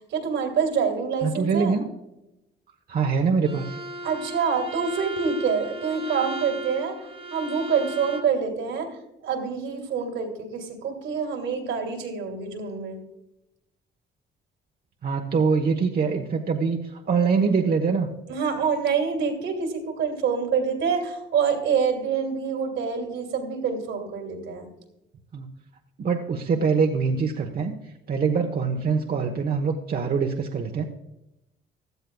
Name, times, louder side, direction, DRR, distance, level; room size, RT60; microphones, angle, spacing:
voice 1, 0.1-1.8 4.0-7.0 7.3-8.9 9.2-13.0 18.3-24.7, right 6 dB, 80° right, 3 dB, 2.6 m, -26 dB
voice 2, 1.2-1.9 2.9-3.8 15.0-18.1 25.3-25.5 26.0-27.7 28.1-30.9, right 5 dB, 50° right, 3 dB, 1.1 m, -24 dB
Bowed string instrument, 3.4-8.4, right 2 dB, 30° right, 1.1 m, -36 dB
16.0 x 12.0 x 2.3 m, 0.89 s
cardioid pair, 90°, 20 cm